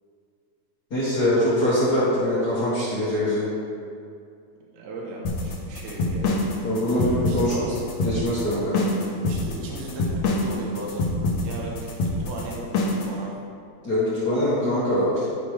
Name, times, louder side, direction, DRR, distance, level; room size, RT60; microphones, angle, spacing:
voice 1, 0.9-3.5 6.6-7.5 8.0-8.8 13.8-15.3, left 1 dB, 50° left, -12 dB, 1.2 m, -23 dB
voice 2, 4.7-6.3 7.3-7.7 9.2-11.1 11.4-13.3, right 2 dB, 75° right, -3 dB, 2.8 m, -37 dB
sound 1, 5.3-13.1, left 2 dB, 80° left, 1.6 m, -25 dB
11.0 x 4.9 x 3.3 m, 2.3 s
omnidirectional pair, 4.6 m